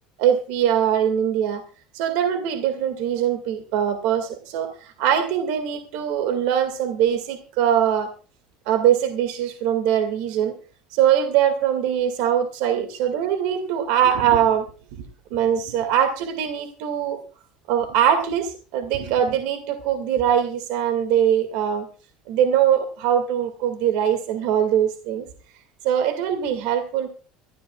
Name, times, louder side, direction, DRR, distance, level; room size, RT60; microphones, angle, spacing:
voice 1, 0.2-1.6 1.9-8.1 8.7-10.5 10.9-14.7 14.9-15.0 15.3-17.2 17.7-21.9 22.3-25.3 25.8-27.1, right 9 dB, 65° right, 7 dB, 2.1 m, -22 dB
24.5 x 13.5 x 2.4 m, 0.36 s
cardioid pair, 180°, 2 cm